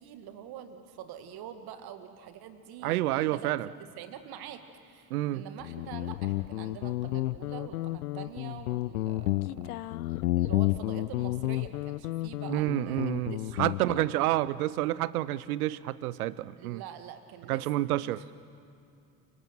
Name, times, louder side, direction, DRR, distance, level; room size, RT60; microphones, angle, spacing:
voice 1, 0.0-3.5 4.0-9.7 10.1-14.3 16.6-18.1, right 9 dB, 55° right, 9 dB, 1.9 m, -45 dB
voice 2, 2.8-3.7 5.1-5.4 12.5-16.8 17.5-18.3, right 15 dB, 70° right, 19 dB, 0.7 m, -29 dB
Guitar, 5.6-14.1, left 17 dB, 75° left, 0.5 m, -31 dB
30.0 x 19.0 x 7.6 m, 2.5 s
figure-of-eight pair, 55°, 45 cm